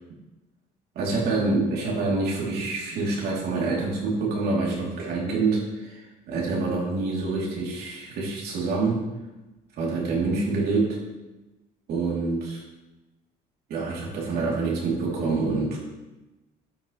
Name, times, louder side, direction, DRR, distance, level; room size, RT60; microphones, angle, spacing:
voice 1, 1.0-9.0 9.8-11.0 11.9-12.6 13.7-15.8, right 3 dB, 70° right, -4 dB, 3.5 m, -26 dB
12.0 x 7.0 x 3.4 m, 1.1 s
cardioid pair, 110°, 17 cm